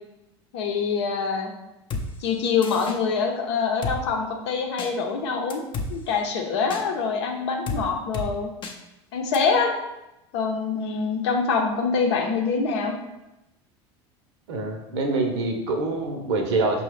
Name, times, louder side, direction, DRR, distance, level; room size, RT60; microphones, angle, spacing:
voice 1, 0.5-1.5 2.2-5.6 5.9-8.5 9.1-9.7 10.3-12.9, left 5 dB, 75° left, 2 dB, 0.7 m, -25 dB
Drum kit, 1.9-2.1 2.6-3.0 3.8-4.0 4.8-4.9 5.5-5.9 6.7-6.8 7.7-7.8 8.1-8.3 8.6-8.8 9.3-9.4, left 4 dB, 35° left, 0.6 m, -30 dB
voice 2, 14.5-16.8, right 3 dB, 75° right, 3 dB, 0.8 m, -25 dB
5.5 x 2.3 x 3.3 m, 0.93 s
hypercardioid pair, 90°, 15 cm